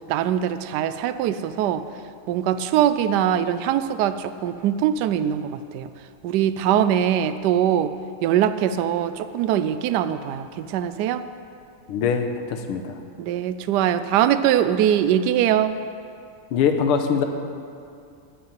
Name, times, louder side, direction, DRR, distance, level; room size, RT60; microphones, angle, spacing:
voice 1, 0.1-1.8 2.3-5.9 6.2-7.9 8.2-11.2 13.2-15.7, right 10 dB, 90° right, 11 dB, 0.9 m, -22 dB
voice 2, 11.9-13.0 16.5-17.2, left 6 dB, 85° left, 6 dB, 1.8 m, -22 dB
9.9 x 8.6 x 9.5 m, 2.5 s
omnidirectional pair, 2.4 m